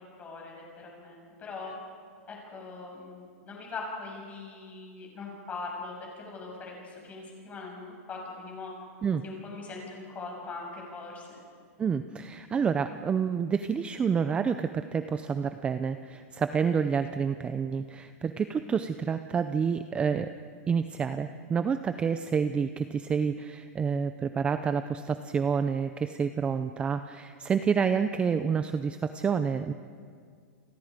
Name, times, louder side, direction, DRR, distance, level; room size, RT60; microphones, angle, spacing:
voice 1, 0.2-1.7 2.3-8.7 9.2-11.4, left 3 dB, 20° left, -1 dB, 6.7 m, -41 dB
voice 2, 11.8-20.3 20.7-29.7, right 6 dB, 15° right, 10 dB, 0.5 m, -28 dB
30.0 x 23.0 x 5.2 m, 2.1 s
supercardioid pair, 155°, 8 cm